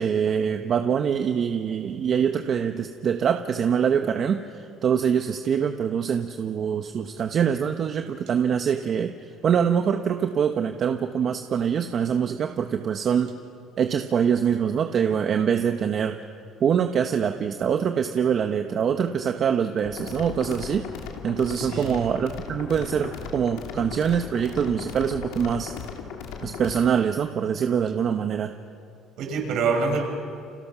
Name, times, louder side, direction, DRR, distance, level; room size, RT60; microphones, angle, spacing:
voice 1, 0.0-9.1 9.4-13.3 13.8-16.2 16.6-20.9 21.2-25.7 26.4-28.5, right 7 dB, 45° right, 6 dB, 1.1 m, -24 dB
sound 1, 19.9-26.9, left 7 dB, 90° left, 2.9 m, -37 dB
voice 2, 21.6-22.1 29.2-30.0, right 4 dB, 65° right, 2 dB, 6.1 m, -26 dB
30.0 x 27.5 x 6.1 m, 2.4 s
cardioid pair, 130°, 0 cm